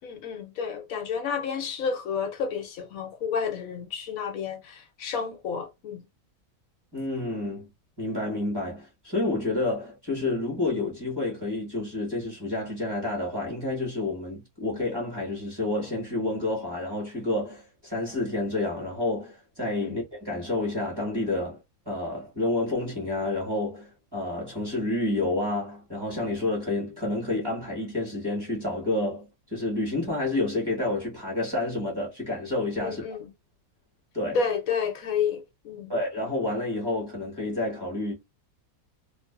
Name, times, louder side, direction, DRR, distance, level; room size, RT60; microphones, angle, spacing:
voice 1, 0.0-6.0 19.8-20.0 32.8-33.3 34.3-35.9, left 6 dB, 75° left, 1.1 m, -30 dB
voice 2, 6.9-7.7 8.0-21.6 21.9-33.0 34.1-34.4 35.9-38.1, left 2 dB, 20° right, 1.0 m, -29 dB
2.5 x 2.4 x 2.2 m
omnidirectional pair, 1.5 m